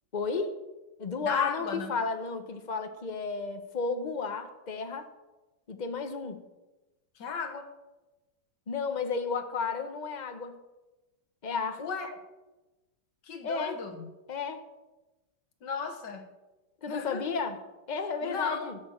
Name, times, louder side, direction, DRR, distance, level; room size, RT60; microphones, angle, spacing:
voice 1, 0.1-0.5 1.0-5.1 5.7-6.4 8.7-10.6 11.4-11.8 13.4-13.8 14.3-14.6 16.8-17.6 17.9-18.8, left 4 dB, 30° left, 8 dB, 0.8 m, -32 dB
voice 2, 1.2-1.9 7.2-7.7 11.8-12.2 13.2-14.0 15.6-16.3 16.9-17.3 18.2-18.7, left 5 dB, 65° left, 5 dB, 2.0 m, -35 dB
11.5 x 8.6 x 7.2 m, 1.1 s
omnidirectional pair, 2.1 m